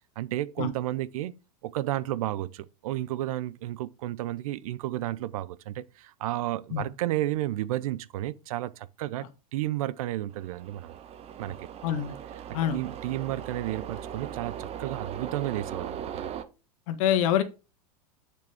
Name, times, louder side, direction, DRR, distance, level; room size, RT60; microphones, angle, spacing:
voice 1, 0.2-1.4 1.6-10.9 11.4-11.7 12.7-16.3, right 15 dB, 60° right, 0.6 m, -32 dB
sound 1, 10.3-16.4, right 9 dB, 30° right, 1.1 m, -39 dB
voice 2, 11.8-12.1 12.5-12.8 16.9-17.4, left 10 dB, 55° left, 1.6 m, -25 dB
8.2 x 6.8 x 3.5 m
hypercardioid pair, 95°, 20 cm